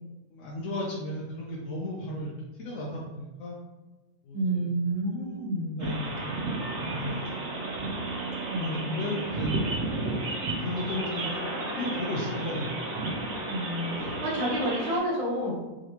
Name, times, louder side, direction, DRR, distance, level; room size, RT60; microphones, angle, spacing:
voice 1, 0.3-3.6 4.2-4.7 5.0-6.4 6.8-7.7 8.6-9.8 10.6-11.3 11.8-12.7, left 1 dB, 70° left, -4 dB, 0.9 m, -35 dB
voice 2, 4.3-5.9 8.5-9.1 13.5-15.6, right 1 dB, 30° right, -3 dB, 0.7 m, -30 dB
sound 1, 5.8-15.0, right 2 dB, 60° right, 1.0 m, -32 dB
3.7 x 3.2 x 2.9 m, 1.1 s
omnidirectional pair, 1.5 m